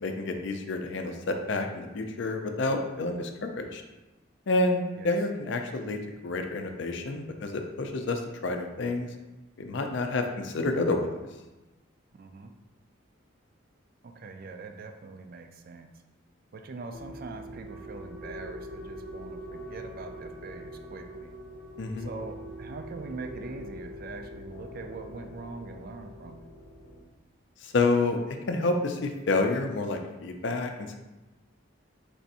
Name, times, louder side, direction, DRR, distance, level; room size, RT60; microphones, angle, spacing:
voice 1, 0.0-3.8 4.5-9.1 9.6-11.1 21.8-22.1 27.6-28.2 28.5-31.0, left 2 dB, 60° left, 5 dB, 0.4 m, -29 dB
voice 2, 12.1-12.5 14.0-15.9 16.5-21.3 22.0-26.5, right 3 dB, 45° right, 5 dB, 0.3 m, -42 dB
sound 1, 16.9-27.0, left 1 dB, 15° left, 0.6 m, -45 dB
Wind instrument woodwind instrument, 17.6-23.7, right 2 dB, 80° right, 1.3 m, -46 dB
3.4 x 2.5 x 4.1 m, 1.1 s
head